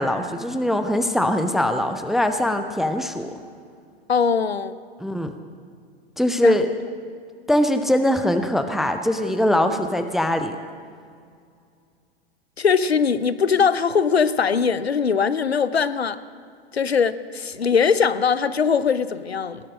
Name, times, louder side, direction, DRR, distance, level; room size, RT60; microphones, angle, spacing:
voice 1, 0.0-3.3 5.0-5.3 6.2-6.7 7.5-10.6, left 1 dB, ahead, 8 dB, 0.4 m, -22 dB
voice 2, 4.1-4.8 6.4-6.6 12.6-16.2 16.7-19.6, left 6 dB, 80° left, 15 dB, 0.7 m, -21 dB
18.5 x 8.7 x 6.2 m, 2.2 s
figure-of-eight pair, 95°, 31 cm